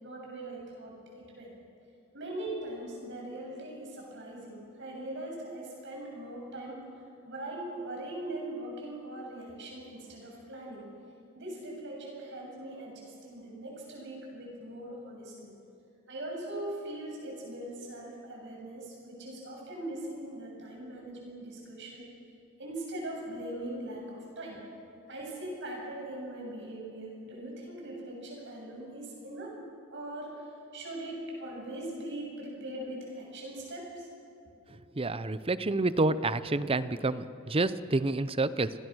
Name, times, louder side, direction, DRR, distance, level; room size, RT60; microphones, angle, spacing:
voice 1, 0.0-1.5 2.1-6.8 7.2-10.9 11.3-15.5 16.1-22.0 22.6-24.6 25.1-29.5 29.9-34.1, right 1 dB, 55° right, -1 dB, 7.4 m, -41 dB
voice 2, 34.9-38.7, right 2 dB, 25° right, 15 dB, 0.6 m, -28 dB
29.0 x 21.5 x 6.4 m, 2.7 s
head